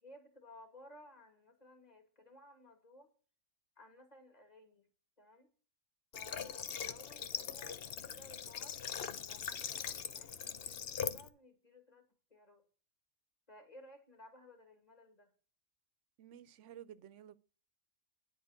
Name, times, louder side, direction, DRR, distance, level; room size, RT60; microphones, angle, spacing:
voice 1, 0.0-3.1 3.8-4.9 5.2-5.5 6.1-12.6 13.5-15.3, left 1 dB, 35° left, 2.4 m, -58 dB
Water / Water tap faucet, 6.1-11.3, left 8 dB, 60° left, 0.9 m, -41 dB
voice 2, 16.2-17.4, right 10 dB, 90° right, 1.0 m, -53 dB
10.5 x 4.8 x 7.5 m
omnidirectional pair, 1.2 m